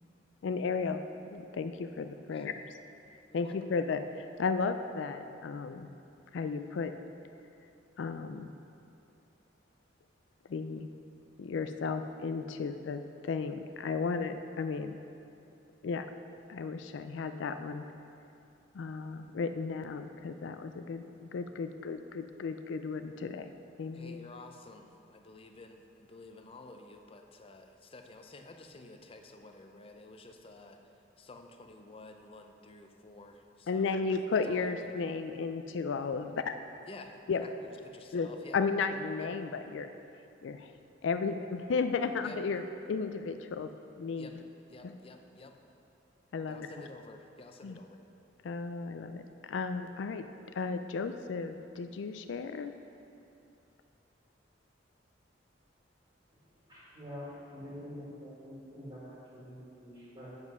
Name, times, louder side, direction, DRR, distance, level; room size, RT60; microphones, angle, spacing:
voice 1, 0.4-1.0 1.3-2.5 3.3-5.9 6.3-6.9 8.0-8.5 10.4-10.9 11.4-15.0 15.8-16.1 16.5-17.9 18.7-24.3 33.7-36.6 37.3-37.4 38.1-39.9 40.4-40.8 41.0-43.7 44.0-44.4 44.8-44.9 46.3-46.7 47.6-47.8 48.4-50.2 50.5-52.7, left 4 dB, 75° left, 9 dB, 0.4 m, -34 dB
voice 2, 23.9-30.8 31.2-35.1 36.9-38.6 42.2-42.4 44.2-44.3 44.7-45.6 46.5-48.0, left 2 dB, 30° left, 5 dB, 0.6 m, -51 dB
voice 3, 56.7-57.3 57.5-60.3, equal, 25° right, -8 dB, 2.0 m, -46 dB
8.0 x 7.3 x 5.4 m, 2.7 s
head